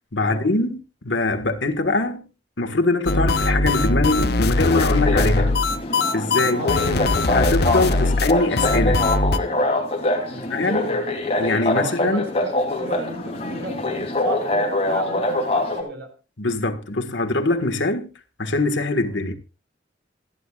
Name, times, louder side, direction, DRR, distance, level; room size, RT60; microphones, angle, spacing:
voice 1, 0.1-2.3 2.6-5.5 6.1-6.7 7.3-9.1 10.5-10.9 11.4-12.2 16.4-18.1 18.4-19.3, left 2 dB, 75° left, 1.6 m, -23 dB
sound 1, 3.1-9.4, left 2 dB, 55° left, 0.8 m, -21 dB
sound 2, 4.6-15.8, left 2 dB, 30° left, 3.0 m, -24 dB
voice 2, 6.5-7.0 10.3-11.1 11.8-14.0 14.2-16.1 19.0-19.1, right 1 dB, 55° right, 4.6 m, -34 dB
27.0 x 9.9 x 2.4 m
head